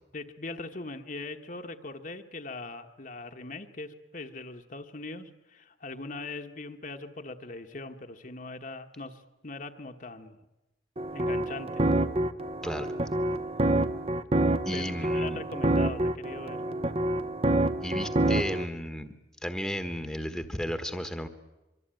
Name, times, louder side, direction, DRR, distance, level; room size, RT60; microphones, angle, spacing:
voice 1, 0.1-10.4 11.1-11.8 14.7-16.8, left 3 dB, 40° left, 5 dB, 1.3 m, -41 dB
sound 1, 11.0-18.6, right 1 dB, 30° right, 0.9 m, -27 dB
voice 2, 14.6-15.4 17.8-19.1 19.4-21.3, equal, ahead, 9 dB, 1.3 m, -33 dB
24.5 x 24.0 x 9.1 m, 1.0 s
head